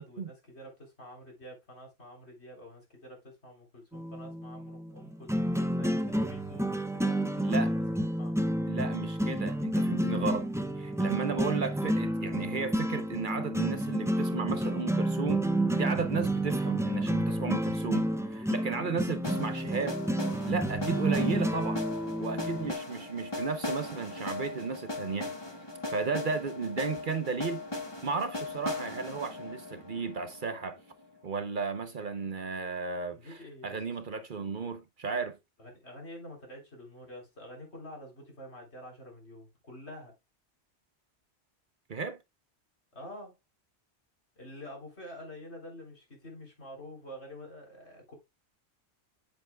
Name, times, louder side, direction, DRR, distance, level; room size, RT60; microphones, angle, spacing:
voice 1, 0.0-7.7 8.2-8.3 33.1-33.8 35.6-40.1 42.9-43.3 44.4-48.1, equal, 70° left, 3.8 m, -48 dB
sound 1, 3.9-22.7, right 1 dB, 5° right, 0.6 m, -30 dB
voice 2, 7.4-7.7 8.7-10.5 10.8-15.4 15.7-20.0 20.5-21.8 22.2-25.4 25.9-27.6 28.0-30.8 31.2-35.4 41.9-42.2, right 5 dB, 50° right, 0.9 m, -34 dB
sound 2, 19.2-31.1, left 2 dB, 20° left, 1.4 m, -39 dB
8.7 x 7.8 x 2.2 m
omnidirectional pair, 1.2 m